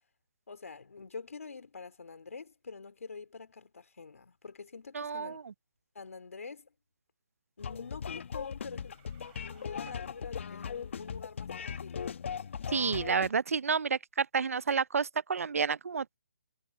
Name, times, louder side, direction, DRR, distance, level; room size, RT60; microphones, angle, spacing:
voice 1, 0.5-5.4 6.0-6.7 7.6-9.0 9.4-12.1, left 4 dB, 75° left, 3.7 m, -46 dB
voice 2, 4.9-5.4 12.7-16.2, right 5 dB, 70° right, 0.6 m, -30 dB
sound 1, 7.6-13.3, left 7 dB, 55° left, 1.3 m, -39 dB
sound 2, 8.8-10.8, right 28 dB, 25° right, 4.0 m, -61 dB
hypercardioid pair, 155°, 8 cm